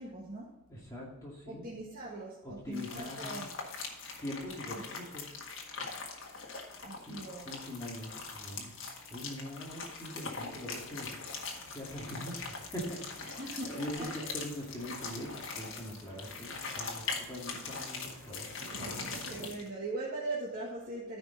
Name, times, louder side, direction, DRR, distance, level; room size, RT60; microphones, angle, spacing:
voice 1, 0.0-0.5 1.5-3.5 4.7-4.9 6.8-7.5 13.2-14.3 19.2-21.2, right 2 dB, 40° right, -5 dB, 1.6 m, -40 dB
voice 2, 0.7-1.7 2.4-3.5 4.2-5.3 7.1-8.7 9.1-11.2 11.7-19.1, equal, 15° left, -4 dB, 2.2 m, -43 dB
sound 1, 2.7-19.7, left 4 dB, 60° left, 1.7 m, -42 dB
sound 2, 10.8-19.5, right 2 dB, 85° right, 1.1 m, -52 dB
14.0 x 5.1 x 3.8 m, 1.0 s
head